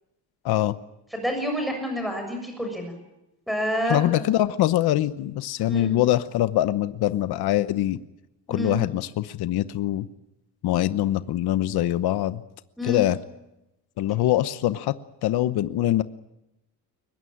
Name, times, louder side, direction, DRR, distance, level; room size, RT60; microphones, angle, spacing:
voice 1, 0.4-0.7 3.9-8.0 8.5-10.1 10.6-12.4 12.8-13.2 14.0-14.9 15.2-16.0, left 14 dB, 70° left, 13 dB, 1.0 m, -23 dB
voice 2, 1.1-2.9 3.5-4.2 5.7-6.0 8.5-8.8 12.8-13.1, equal, ahead, 4 dB, 6.8 m, -28 dB
23.0 x 21.0 x 8.7 m, 0.90 s
cardioid pair, 165°, 40 cm